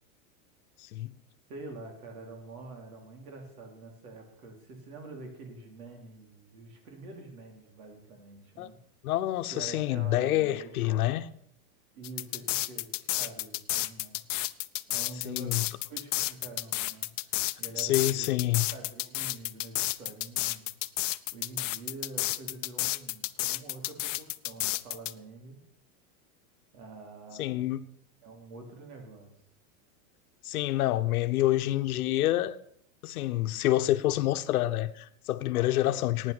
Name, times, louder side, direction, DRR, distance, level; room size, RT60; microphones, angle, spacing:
voice 1, 0.8-1.2 8.6-8.7 9.0-11.2 15.2-15.6 17.8-18.7 27.4-27.8 30.4-32.6 33.0-36.3, left 15 dB, 75° left, 1.0 m, -27 dB
voice 2, 1.5-8.8 9.5-11.0 11.9-14.2 14.9-18.3 18.7-20.7 21.3-25.6 26.7-27.7 28.2-29.3, right 3 dB, 80° right, 4.2 m, -46 dB
sound 1, 12.0-25.1, left 17 dB, 55° left, 0.6 m, -31 dB
16.0 x 9.6 x 6.2 m
supercardioid pair, 180°, 44 cm